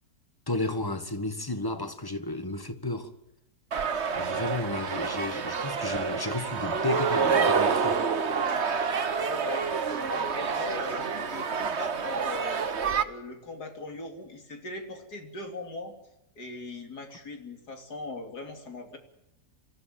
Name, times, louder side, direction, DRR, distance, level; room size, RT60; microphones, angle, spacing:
voice 1, 0.5-3.1 4.2-8.0, left 2 dB, 15° left, 1.6 m, -32 dB
sound 1, 3.7-13.0, right 6 dB, 45° right, 1.4 m, -28 dB
voice 2, 9.2-12.6 13.0-16.0 16.4-19.0, left 2 dB, 85° left, 3.6 m, -40 dB
26.5 x 14.5 x 9.1 m
omnidirectional pair, 1.7 m